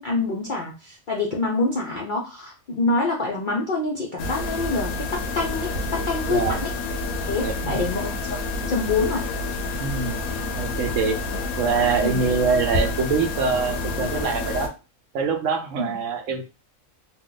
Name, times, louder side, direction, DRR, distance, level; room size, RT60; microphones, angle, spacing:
voice 1, 0.0-6.7 7.3-8.1 8.7-9.3 12.0-12.2 15.8-16.0, left 3 dB, 60° left, -2 dB, 0.5 m, -26 dB
sound 1, 4.2-14.7, left 2 dB, 90° left, 1.1 m, -28 dB
voice 2, 6.3-6.6 7.4-7.9 9.8-10.2 10.5-11.2 11.6-14.7 15.1-16.4, right 5 dB, 70° right, 5 dB, 0.9 m, -24 dB
2.9 x 2.2 x 3.8 m, 0.31 s
omnidirectional pair, 1.5 m